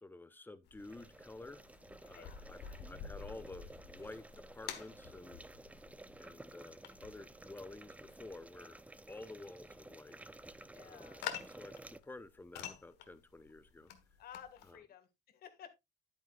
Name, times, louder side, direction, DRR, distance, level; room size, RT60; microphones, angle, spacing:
voice 1, 0.0-1.6 2.0-5.4 6.2-8.8 9.1-10.2 10.8-11.1 11.5-11.7 12.0-13.9 14.7-14.8, left 2 dB, 10° left, 0.8 m, -51 dB
sound 1, 0.7-14.8, left 9 dB, 80° left, 1.4 m, -50 dB
sound 2, 0.8-12.0, right 2 dB, 10° right, 0.5 m, -54 dB
voice 2, 10.7-11.2 14.2-15.7, left 9 dB, 65° left, 1.9 m, -54 dB
10.0 x 9.3 x 2.4 m
cardioid pair, 110°, 17 cm